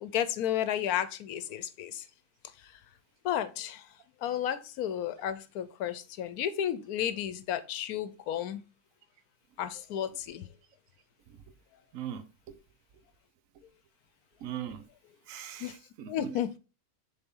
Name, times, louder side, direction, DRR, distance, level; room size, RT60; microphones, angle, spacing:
voice 1, 0.0-2.1 3.2-3.9 4.2-8.6 9.6-10.5 15.6-15.8 16.1-16.6, left 10 dB, 80° left, 1.1 m, -32 dB
voice 2, 11.9-12.6 13.5-13.6 14.4-14.9 15.3-16.3, right 10 dB, 65° right, 1.1 m, -40 dB
6.9 x 4.1 x 3.7 m
omnidirectional pair, 1.6 m